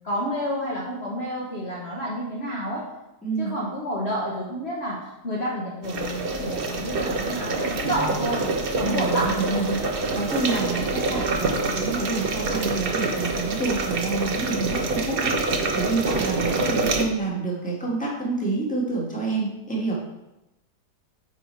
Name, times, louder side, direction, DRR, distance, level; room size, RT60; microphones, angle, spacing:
voice 1, 0.0-2.9 3.4-9.4, equal, 45° left, -4 dB, 1.3 m, -30 dB
voice 2, 3.2-3.5 8.8-19.9, right 3 dB, 5° left, -3 dB, 1.6 m, -28 dB
sound 1, 5.8-17.0, right 3 dB, 45° right, 0.8 m, -26 dB
8.9 x 4.2 x 4.6 m, 0.95 s
omnidirectional pair, 1.8 m